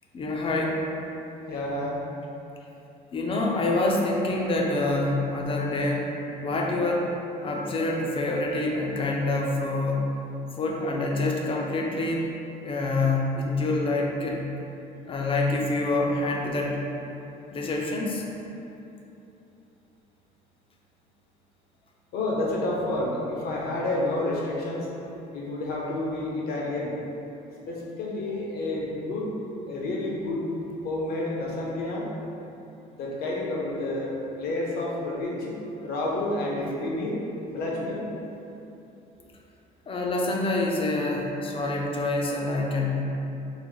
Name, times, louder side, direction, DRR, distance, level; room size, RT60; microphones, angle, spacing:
voice 1, 0.1-0.8 3.1-6.1 6.4-7.1 7.4-10.0 10.6-12.3 12.6-14.4 15.1-16.8 17.5-18.2 39.9-42.9, left 2 dB, 35° left, -1 dB, 0.5 m, -26 dB
voice 2, 1.5-2.0 22.1-24.9 25.3-27.0 27.7-29.4 29.7-30.4 30.8-32.1 33.0-35.5 35.8-37.2 37.5-38.0, left 2 dB, 65° left, -3 dB, 0.7 m, -29 dB
3.8 x 2.1 x 3.1 m, 2.9 s
cardioid pair, 110°, 17 cm